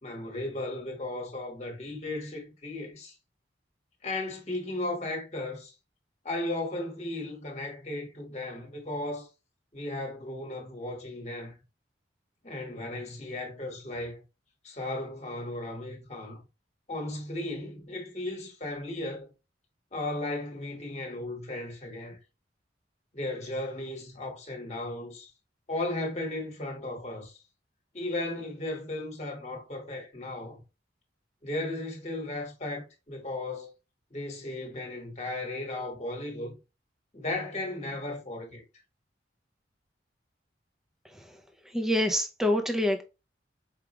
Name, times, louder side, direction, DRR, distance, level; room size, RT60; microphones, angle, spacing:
voice 1, 0.0-3.1 4.0-5.7 6.2-9.3 9.7-11.6 12.4-14.2 14.6-16.4 16.9-19.3 19.9-22.2 23.1-25.3 25.7-27.4 27.9-30.6 31.4-33.7 34.1-36.6 37.1-38.6, left 2 dB, 35° left, 1.3 m, -35 dB
voice 2, 41.7-43.0, left 1 dB, ahead, 0.5 m, -26 dB
4.8 x 2.4 x 3.0 m
head